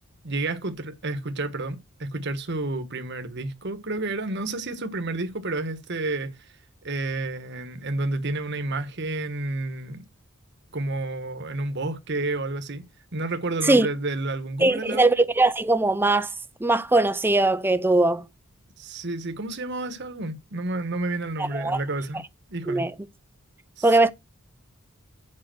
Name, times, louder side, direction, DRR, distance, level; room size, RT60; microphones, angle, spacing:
voice 1, 0.2-6.5 6.8-10.0 10.7-12.8 13.1-15.1 18.8-22.2 22.5-22.8 23.8-24.0, right 2 dB, 55° right, 1.3 m, -30 dB
voice 2, 14.6-16.3 16.6-18.3 21.4-21.8 22.7-22.9 23.8-24.1, right 2 dB, 10° right, 0.5 m, -20 dB
7.7 x 5.5 x 7.7 m
head